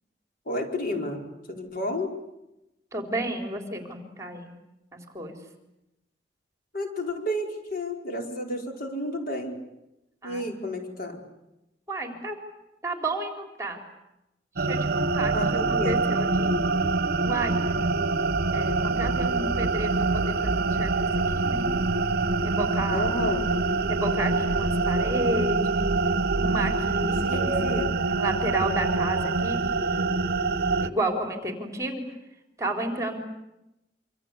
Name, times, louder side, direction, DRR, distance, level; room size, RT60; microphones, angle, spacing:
voice 1, 0.4-2.1 6.7-9.6 10.2-11.2 15.3-16.0 22.9-23.4 27.2-28.0, left 1 dB, 55° left, 2 dB, 4.9 m, -31 dB
voice 2, 2.9-4.6 4.9-5.4 10.2-10.5 11.9-12.4 12.8-13.8 14.6-15.3 15.7-16.6 17.2-17.9 18.5-21.1 21.3-21.7 22.4-23.2 23.8-25.9 26.4-30.2 30.8-32.0 32.6-33.2, right 1 dB, 15° right, 4 dB, 4.1 m, -32 dB
sound 1, 14.6-30.9, right 3 dB, 60° right, 1.0 m, -25 dB
27.0 x 26.0 x 8.4 m, 0.91 s
head